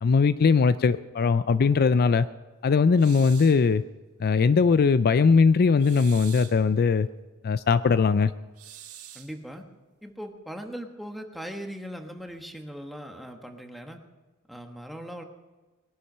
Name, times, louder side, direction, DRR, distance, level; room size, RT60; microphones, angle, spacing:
voice 1, 0.0-2.3 2.6-3.8 4.2-7.1 7.4-8.3, left 5 dB, 45° left, 13 dB, 0.4 m, -20 dB
sound 1, 3.0-3.6 5.8-6.6 8.6-9.4, right 10 dB, 75° right, 1.8 m, -45 dB
voice 2, 9.1-9.7 10.0-14.0 14.5-15.2, equal, ahead, 4 dB, 1.3 m, -39 dB
21.5 x 11.0 x 5.5 m, 1.3 s
head